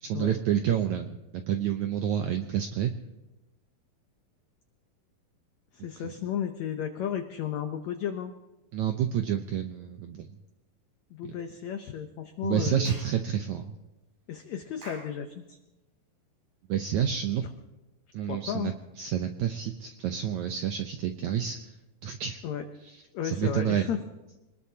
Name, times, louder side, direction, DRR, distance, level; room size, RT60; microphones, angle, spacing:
voice 1, 0.0-2.9 6.0-6.1 8.7-10.3 11.2-11.3 12.4-13.8 16.7-17.5 18.1-21.7 22.0-22.4 23.2-23.9, right 9 dB, 80° right, 6 dB, 1.7 m, -29 dB
voice 2, 5.7-8.3 11.1-13.0 14.3-15.6 18.3-18.7 22.4-22.6 23.1-24.0, left 9 dB, 85° left, 6 dB, 1.5 m, -33 dB
Clapping / Chirp tweet, 12.8-13.2 14.8-15.2, right 1 dB, 60° right, 8.3 m, -45 dB
24.5 x 20.0 x 2.8 m, 1.0 s
omnidirectional pair, 4.3 m